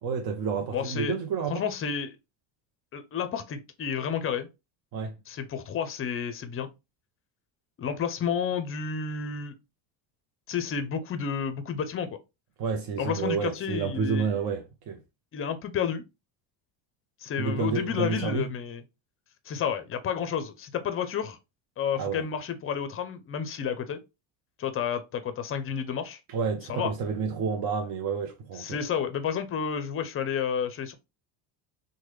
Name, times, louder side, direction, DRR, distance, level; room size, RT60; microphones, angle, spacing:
voice 1, 0.0-1.6 4.9-5.1 12.6-15.0 17.4-18.5 22.0-22.3 26.3-28.8, right 5 dB, 50° right, 0.6 m, -30 dB
voice 2, 0.7-1.1 1.5-2.2 2.9-4.5 5.3-6.7 7.8-9.5 10.5-12.1 13.0-14.4 15.3-16.0 17.2-18.8 19.5-21.4 21.8-24.0 24.6-26.2 26.7-26.9 28.6-30.9, left 7 dB, 30° left, 0.5 m, -31 dB
3.1 x 2.2 x 3.0 m
supercardioid pair, 100°, 48 cm